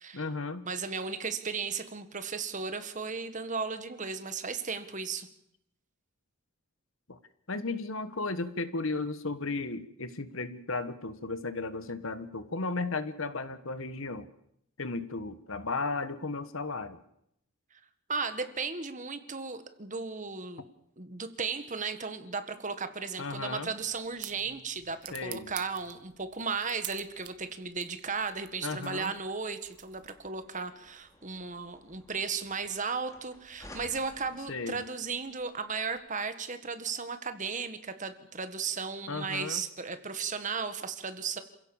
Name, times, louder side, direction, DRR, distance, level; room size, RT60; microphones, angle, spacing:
voice 1, 0.1-0.6 7.1-7.2 7.5-14.3 14.8-17.0 23.2-23.7 25.1-25.5 28.6-29.1 34.5-34.8 39.1-39.6, left 3 dB, 60° left, 12 dB, 1.3 m, -35 dB
voice 2, 0.6-5.3 18.1-20.6 21.0-41.4, right 5 dB, 35° right, 9 dB, 1.6 m, -35 dB
sound 1, 23.6-30.5, right 13 dB, 85° right, 1.5 m, -48 dB
sound 2, 29.4-36.0, left 1 dB, 15° left, 2.6 m, -56 dB
28.0 x 16.0 x 7.2 m, 0.77 s
head